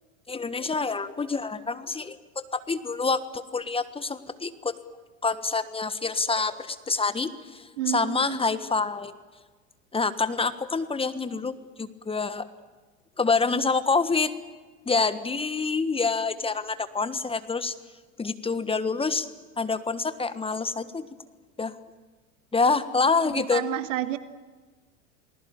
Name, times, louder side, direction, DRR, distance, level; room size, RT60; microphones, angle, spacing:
voice 1, 0.3-4.8 5.2-9.2 9.9-12.5 13.2-14.3 14.8-17.7 18.2-19.3 19.6-21.1 21.6-21.8 22.5-23.6, left 4 dB, 15° left, 12 dB, 1.4 m, -27 dB
voice 2, 7.8-8.5 23.2-24.2, right 14 dB, 70° right, 11 dB, 1.8 m, -30 dB
28.5 x 19.5 x 8.8 m, 1.3 s
hypercardioid pair, 95°, 39 cm